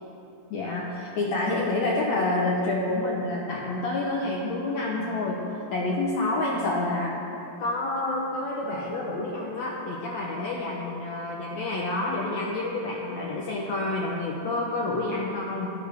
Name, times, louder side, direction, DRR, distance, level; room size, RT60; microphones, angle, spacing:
voice 1, 0.5-5.4 5.7-7.2 7.6-15.7, left 2 dB, 75° left, -3 dB, 1.7 m, -28 dB
19.5 x 6.5 x 3.4 m, 2.9 s
omnidirectional pair, 4.0 m